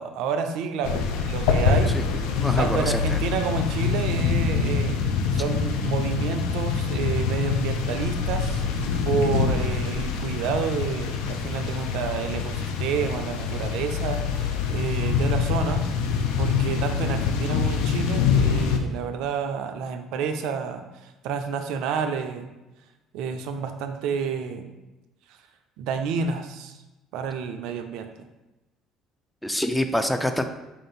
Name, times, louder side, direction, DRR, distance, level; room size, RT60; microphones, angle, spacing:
voice 1, 0.0-2.3 2.6-5.0 5.3-15.9 16.4-22.5 23.1-24.7 25.8-26.8 27.1-28.1, right 6 dB, 70° right, 6 dB, 0.3 m, -29 dB
sound 1, 0.8-18.8, left 5 dB, 75° left, 0.4 m, -25 dB
voice 2, 2.4-3.2 29.4-30.4, left 1 dB, 5° left, 8 dB, 0.3 m, -26 dB
3.5 x 2.5 x 3.7 m, 1.0 s
hypercardioid pair, 65°, 0 cm